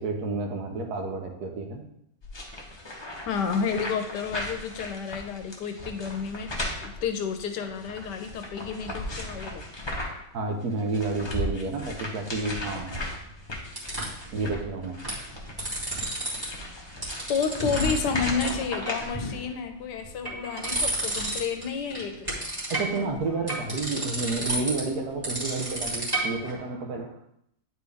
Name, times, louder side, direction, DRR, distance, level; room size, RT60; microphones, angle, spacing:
voice 1, 0.0-1.8 10.3-13.0 14.3-15.0 22.7-27.2, right 3 dB, 65° right, 3 dB, 1.4 m, -30 dB
sound 1, 2.2-10.3 10.6-19.1, left 1 dB, 25° left, 0.6 m, -36 dB
voice 2, 3.3-6.5 6.8-9.6 17.3-22.4, left 6 dB, 75° left, 6 dB, 1.3 m, -30 dB
sound 2, 13.0-14.3 14.8-15.2 15.4-16.4 16.7-18.1 18.4-18.5 18.8-19.5 20.0-21.6 21.9-26.5, right 1 dB, 15° right, 2.1 m, -31 dB
9.1 x 4.5 x 3.4 m, 0.74 s
omnidirectional pair, 1.9 m